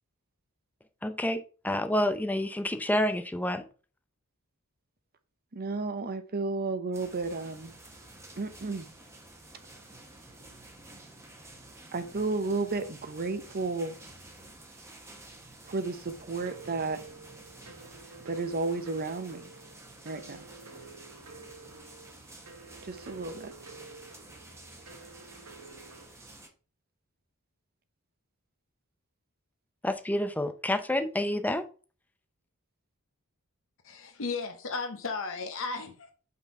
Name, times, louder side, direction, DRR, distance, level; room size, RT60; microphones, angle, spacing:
voice 1, 1.0-3.6 29.8-31.6, left 1 dB, 5° left, 0.6 m, -29 dB
voice 2, 5.5-7.7 8.4-8.9 11.9-13.9 15.7-17.0 18.3-19.5 20.0-20.5 22.9-23.5, right 3 dB, 45° right, 0.7 m, -32 dB
sound 1, 6.9-26.5, right 2 dB, 15° right, 1.1 m, -51 dB
sound 2, 16.5-26.1, right 3 dB, 80° right, 1.3 m, -50 dB
voice 3, 33.8-36.1, left 4 dB, 65° left, 0.9 m, -35 dB
5.7 x 4.4 x 4.6 m
head